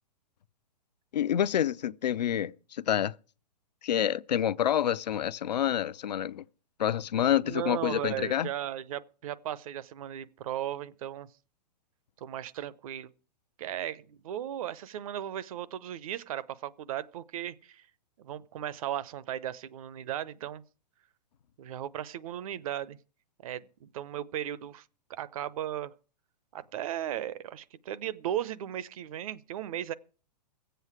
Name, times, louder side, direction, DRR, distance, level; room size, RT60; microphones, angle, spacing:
voice 1, 1.1-3.1 3.8-6.4 6.8-8.5, left 10 dB, 80° left, 0.6 m, -28 dB
voice 2, 7.4-11.3 12.2-13.1 13.6-17.8 18.2-20.6 21.6-23.0 23.4-24.8 25.1-25.9 26.5-29.9, right 11 dB, 55° right, 0.8 m, -36 dB
22.0 x 8.0 x 4.8 m
hypercardioid pair, 135°, 21 cm